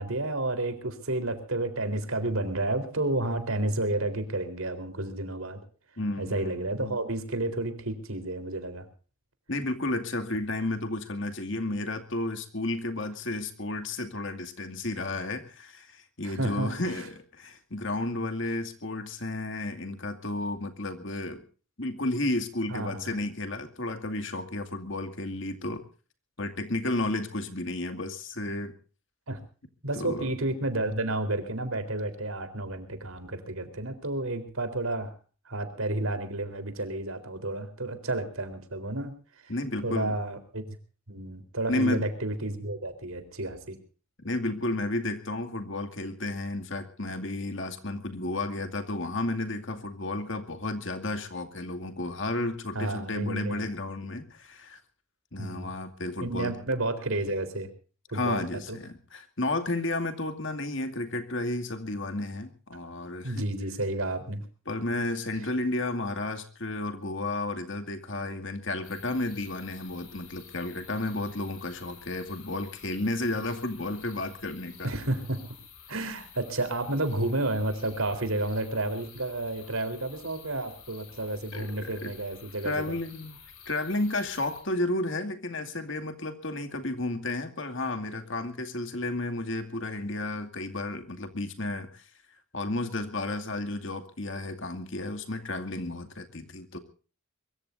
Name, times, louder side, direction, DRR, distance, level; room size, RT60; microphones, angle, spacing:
voice 1, 0.0-5.6 6.2-8.9 16.2-17.0 22.7-23.1 29.3-29.4 29.8-35.1 35.5-39.1 39.4-39.5 39.8-40.6 41.1-43.8 52.8-53.7 55.4-55.7 56.2-57.7 58.1-58.8 63.2-64.4 74.8-75.4 75.9-83.0, right 2 dB, 80° right, 9 dB, 3.8 m, -31 dB
voice 2, 6.0-7.0 9.5-21.4 21.8-25.8 26.4-28.7 29.9-30.3 39.5-40.2 41.7-42.1 44.2-54.8 55.3-56.6 58.1-63.4 64.7-74.9 81.5-82.1 82.6-83.4 83.7-92.0 92.5-96.8, left 2 dB, 60° left, 6 dB, 2.4 m, -32 dB
sound 1, 68.8-84.6, left 7 dB, 85° left, 7.9 m, -51 dB
23.0 x 23.0 x 2.6 m, 0.37 s
head